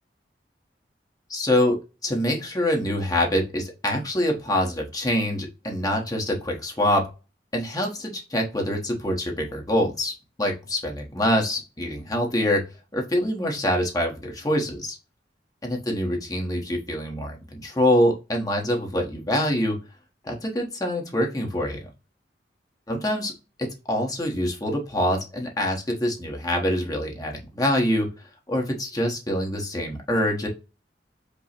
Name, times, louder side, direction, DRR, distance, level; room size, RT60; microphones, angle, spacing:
voice 1, 1.3-1.8 2.0-7.0 7.5-10.1 10.4-12.6 12.9-15.0 15.6-19.8 20.2-21.9 22.9-23.3 23.6-28.1 28.5-30.5, left 1 dB, 20° left, 1 dB, 1.0 m, -25 dB
5.2 x 2.1 x 4.3 m, 0.29 s
head